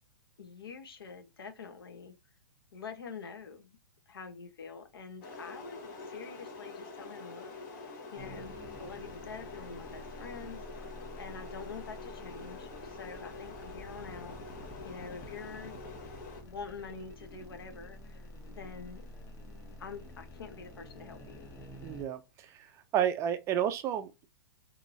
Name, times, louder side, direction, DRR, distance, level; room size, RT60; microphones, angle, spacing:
voice 1, 0.4-2.1 2.7-3.8 4.1-8.5 8.8-15.8 16.4-19.1 19.8-21.5, left 5 dB, 85° left, 0.8 m, -46 dB
sound 1, 5.2-16.4, left 3 dB, 50° left, 1.1 m, -46 dB
sound 2, 8.2-22.0, left 1 dB, 25° left, 0.9 m, -49 dB
voice 2, 21.8-22.7 22.9-24.3, right 10 dB, 25° right, 0.3 m, -31 dB
3.0 x 2.7 x 2.5 m
hypercardioid pair, 130°, 12 cm